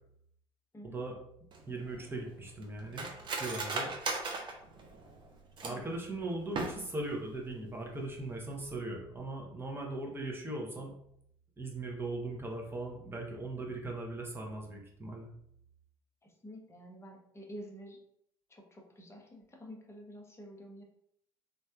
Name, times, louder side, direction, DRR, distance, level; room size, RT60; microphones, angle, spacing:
voice 1, 0.8-1.2 1.7-3.9 5.6-10.9 11.6-15.3, right 2 dB, 15° right, 0 dB, 0.9 m, -39 dB
Cutlery silverware, 1.5-6.0 6.4-7.1 7.4-7.5 7.9-8.2 8.6-8.7, right 3 dB, 40° right, 0.7 m, -38 dB
voice 2, 5.6-6.0 16.2-18.0 18.5-20.8, equal, 20° left, 1 dB, 0.8 m, -49 dB
3.2 x 2.6 x 2.4 m, 0.72 s
hypercardioid pair, 60°, 13 cm